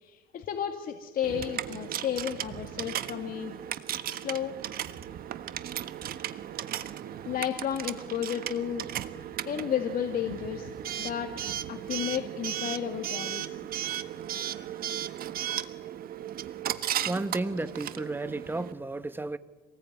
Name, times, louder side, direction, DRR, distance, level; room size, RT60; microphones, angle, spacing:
voice 1, 0.0-3.5 4.1-4.5 7.2-8.9 9.5-10.7 11.0-11.3 11.7-13.6, left 9 dB, 60° left, 2.1 m, -32 dB
Coin (dropping) / Alarm, 1.2-18.7, right 11 dB, 60° right, 1.4 m, -36 dB
voice 2, 17.0-19.4, right 2 dB, 10° right, 1.2 m, -33 dB
27.0 x 20.0 x 9.5 m
cardioid pair, 110°, 17 cm